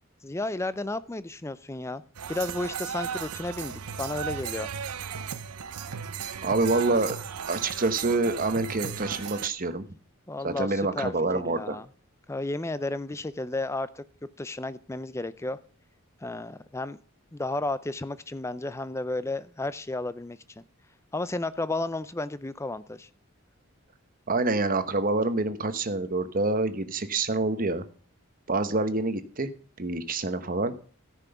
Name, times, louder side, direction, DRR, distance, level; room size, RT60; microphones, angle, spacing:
voice 1, 0.2-2.0 2.3-4.7 10.3-11.9 12.3-14.0 14.4-15.6 16.2-17.0 17.3-20.6 21.1-23.1, left 2 dB, 10° left, 15 dB, 0.4 m, -33 dB
sound 1, 2.1-9.5, right 7 dB, 85° right, 0.7 m, -36 dB
voice 2, 6.4-7.2 7.5-9.8 10.4-11.8 24.3-27.8 28.5-29.5 29.8-30.7, right 3 dB, 40° right, 11 dB, 1.0 m, -27 dB
13.5 x 6.1 x 6.9 m, 0.43 s
head